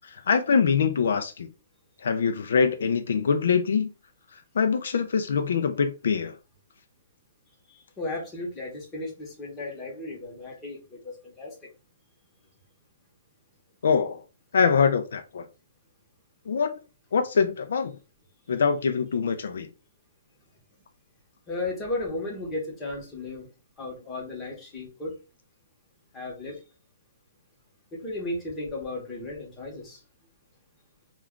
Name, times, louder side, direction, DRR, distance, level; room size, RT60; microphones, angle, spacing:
voice 1, 0.0-1.5 2.0-3.9 4.5-6.4 13.8-14.2 14.5-15.5 16.5-16.8 17.1-18.0 18.5-19.7, left 6 dB, 70° left, 0.4 m, -24 dB
voice 2, 7.7-11.5 21.5-23.5 23.8-25.1 26.1-26.6 27.9-30.0, left 2 dB, 15° left, 0.9 m, -35 dB
2.3 x 2.2 x 3.6 m
hypercardioid pair, 165°, 0 cm